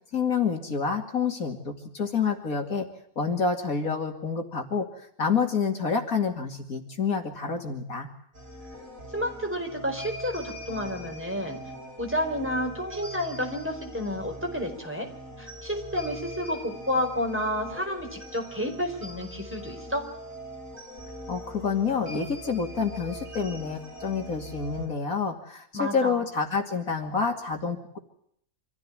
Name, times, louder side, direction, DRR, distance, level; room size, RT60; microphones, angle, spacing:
voice 1, 0.1-2.9 3.2-4.9 5.2-8.1 21.3-28.0, left 5 dB, 65° left, 4 dB, 2.9 m, -28 dB
sound 1, 8.3-24.9, equal, 55° right, 5.5 m, -42 dB
voice 2, 9.1-11.6 12.0-15.1 15.4-20.1 25.7-26.2, equal, 10° right, 2 dB, 4.8 m, -30 dB
26.0 x 15.0 x 8.7 m, 0.69 s
omnidirectional pair, 1.6 m